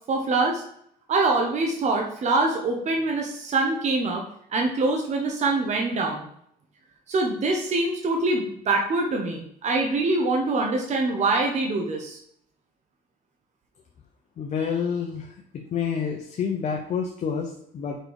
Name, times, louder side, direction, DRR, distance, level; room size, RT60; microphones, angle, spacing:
voice 1, 0.1-0.6 1.1-4.2 4.5-6.2 7.1-12.2, right 3 dB, 45° right, 1 dB, 1.1 m, -24 dB
voice 2, 14.4-18.0, left 6 dB, 45° left, 1 dB, 0.9 m, -29 dB
5.1 x 4.5 x 4.8 m, 0.68 s
cardioid pair, 110°, 17 cm